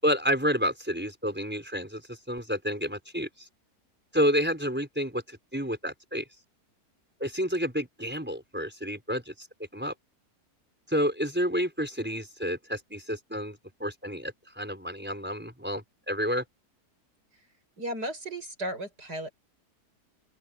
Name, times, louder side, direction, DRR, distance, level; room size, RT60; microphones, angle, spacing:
voice 1, 0.0-3.5 4.1-6.2 7.2-9.5 9.7-9.9 10.9-16.4, equal, 5° right, 5.0 m, -30 dB
voice 2, 17.8-19.3, right 1 dB, 85° right, 8.3 m, -35 dB
open air
omnidirectional pair, 1.7 m